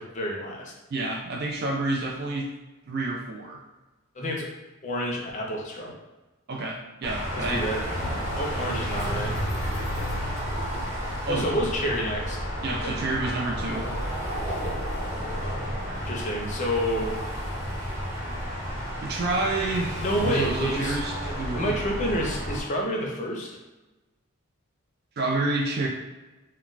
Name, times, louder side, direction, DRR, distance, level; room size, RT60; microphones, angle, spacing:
voice 1, 0.0-0.7 4.2-4.5 4.8-5.9 7.3-7.8 8.4-9.4 11.3-12.4 12.8-13.0 16.1-17.2 20.0-21.0 21.2-23.5, equal, 35° left, -1 dB, 0.5 m, -29 dB
voice 2, 0.9-2.5 2.9-3.6 6.5-7.6 11.3-11.5 12.6-13.9 19.0-21.8 25.2-25.9, right 2 dB, 45° right, 0 dB, 0.4 m, -29 dB
sound 1, 7.0-22.6, equal, 15° right, 0.7 m, -31 dB
sound 2, 7.2-7.6 8.0-8.4 9.0-10.4, left 1 dB, 80° left, 0.6 m, -41 dB
2.2 x 2.2 x 3.8 m, 1.1 s
head